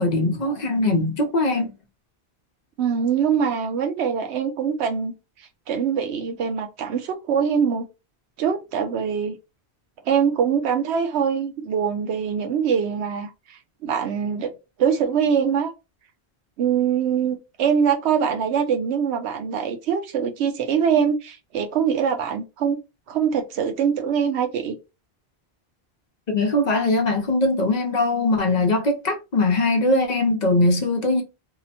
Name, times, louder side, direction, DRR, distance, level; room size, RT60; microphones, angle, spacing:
voice 1, 0.0-1.7 26.3-31.2, left 2 dB, 50° left, 0.7 m, -21 dB
voice 2, 2.8-5.1 5.7-7.8 8.4-9.4 10.1-14.5 14.8-15.7 16.6-22.8 23.1-24.8, right 7 dB, 80° right, 0.9 m, -23 dB
2.8 x 2.1 x 2.7 m
omnidirectional pair, 1.1 m